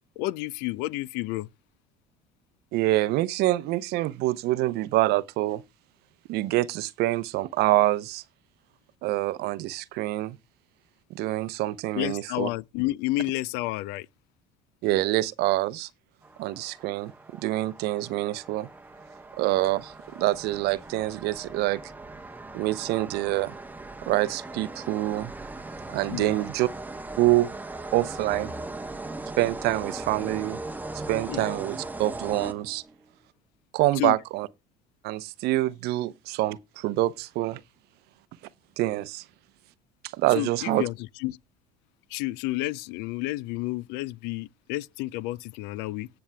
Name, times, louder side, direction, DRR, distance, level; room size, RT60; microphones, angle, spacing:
voice 1, 0.2-1.5 11.9-14.1 26.1-26.3 31.3-31.4 34.0-34.2 40.3-40.9 41.2-41.4 42.1-46.1, left 18 dB, 70° left, 0.4 m, -30 dB
voice 2, 2.7-5.6 6.3-8.2 9.0-10.4 11.1-12.5 14.8-15.9 16.4-17.1 17.4-18.7 19.4-21.8 22.5-23.5 24.1-25.3 25.9-26.7 27.2-27.5 27.9-28.5 29.4-30.6 31.1-32.8 33.7-34.5 35.0-37.6 38.8-39.2 40.1-40.9, right 17 dB, 65° right, 0.6 m, -26 dB
sound 1, 16.2-33.0, right 2 dB, 10° right, 0.9 m, -39 dB
17.5 x 7.0 x 2.2 m
supercardioid pair, 85°, 18 cm